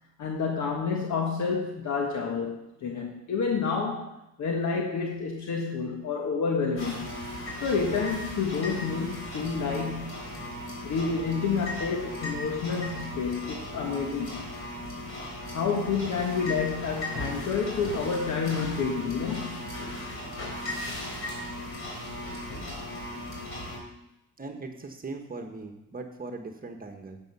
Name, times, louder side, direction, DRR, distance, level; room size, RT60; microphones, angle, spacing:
voice 1, 0.2-7.2 7.6-10.2 10.8-14.4 15.5-19.7, left 5 dB, 70° left, 1 dB, 1.5 m, -29 dB
sound 1, 6.8-23.8, left 1 dB, 45° left, 4.0 m, -37 dB
voice 2, 24.4-27.2, right 3 dB, 30° right, 4 dB, 1.4 m, -39 dB
10.5 x 7.9 x 5.6 m, 0.89 s
cardioid pair, 90°, 30 cm